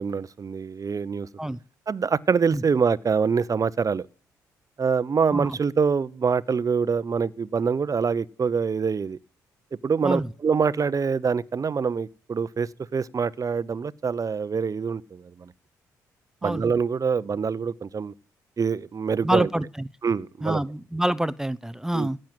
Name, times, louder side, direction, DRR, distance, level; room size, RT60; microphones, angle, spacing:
voice 1, 0.0-1.3 1.9-4.1 4.8-9.2 9.8-15.5 16.4-18.1 18.6-19.5 20.0-20.6 21.9-22.1, right 5 dB, 40° right, 0.9 m, -25 dB
voice 2, 19.2-19.6 20.4-22.2, right 1 dB, 5° right, 0.8 m, -26 dB
16.5 x 7.7 x 7.7 m
hypercardioid pair, 45°, 9 cm